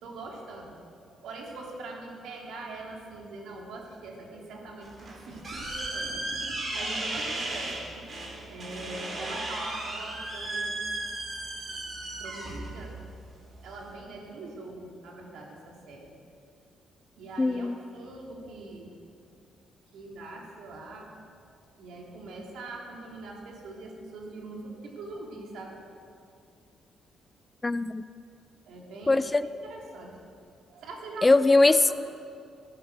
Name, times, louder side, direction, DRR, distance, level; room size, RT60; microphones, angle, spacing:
voice 1, 0.0-0.8 1.2-7.8 8.5-10.8 12.2-13.0 13.5-16.1 17.2-19.0 19.9-21.1 21.8-25.8 28.6-29.3 29.6-30.2 30.7-31.3 31.6-31.9, right 2 dB, 80° right, -1 dB, 3.2 m, -42 dB
sound 1, 4.8-13.9, right 2 dB, 45° right, 4.2 m, -35 dB
voice 2, 17.4-17.8 27.6-28.0 29.1-29.5 31.2-31.9, left 2 dB, 20° left, 14 dB, 0.4 m, -21 dB
15.0 x 11.5 x 6.7 m, 2.4 s
cardioid pair, 90°, 0 cm